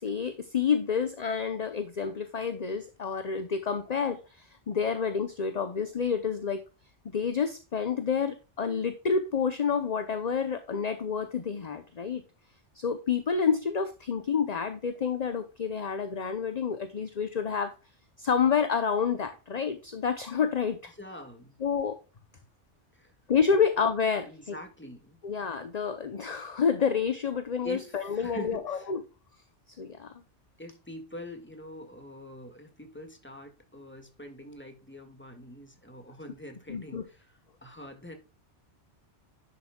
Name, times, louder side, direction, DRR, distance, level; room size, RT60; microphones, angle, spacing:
voice 1, 0.0-6.6 7.1-12.2 12.7-17.7 18.2-20.9 21.6-22.0 23.3-24.6 25.2-29.0 29.8-30.1 36.7-37.0, left 6 dB, 40° left, 0.8 m, -29 dB
voice 2, 20.9-21.6 22.9-23.1 24.3-25.2 27.6-28.9 30.6-38.1, left 1 dB, 10° left, 1.9 m, -44 dB
11.0 x 7.2 x 2.3 m
omnidirectional pair, 1.2 m